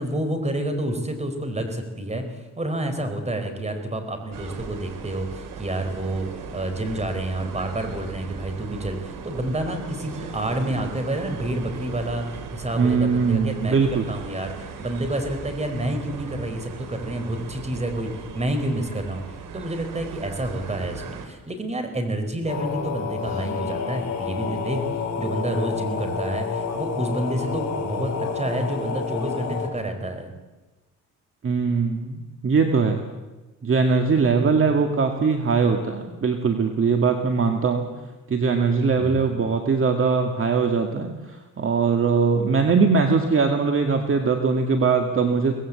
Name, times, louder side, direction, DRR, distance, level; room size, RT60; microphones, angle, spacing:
voice 1, 0.0-2.2 2.6-6.3 6.5-12.2 12.5-19.2 19.5-24.8 25.2-30.3 34.8-34.9 39.0-39.4, right 1 dB, 20° right, 7 dB, 4.5 m, -29 dB
sound 1, 4.3-21.3, right 5 dB, 85° right, 3.0 m, -38 dB
voice 2, 12.8-14.1 31.4-33.0 33.6-37.9 38.3-41.1 41.6-45.5, right 5 dB, 40° right, 5 dB, 2.1 m, -21 dB
sound 2, 22.5-29.7, left 5 dB, 55° left, 5.7 m, -29 dB
24.0 x 19.0 x 8.4 m, 1.1 s
cardioid pair, 115°, 31 cm